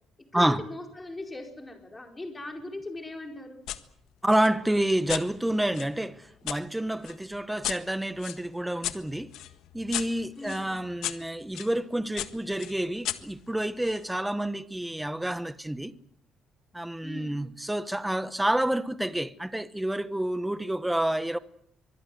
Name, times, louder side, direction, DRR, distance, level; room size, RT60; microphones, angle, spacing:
voice 1, 0.3-3.6 10.3-10.7 17.0-17.4, left 2 dB, 15° left, 4.7 m, -39 dB
sound 1, 3.7-3.8 4.3-6.6 7.0-11.7 12.2-14.0, left 13 dB, 85° left, 1.6 m, -37 dB
voice 2, 4.2-9.3 9.7-15.9 16.7-21.4, right 1 dB, 5° right, 1.0 m, -28 dB
24.5 x 21.0 x 7.8 m
cardioid pair, 160°, 0 cm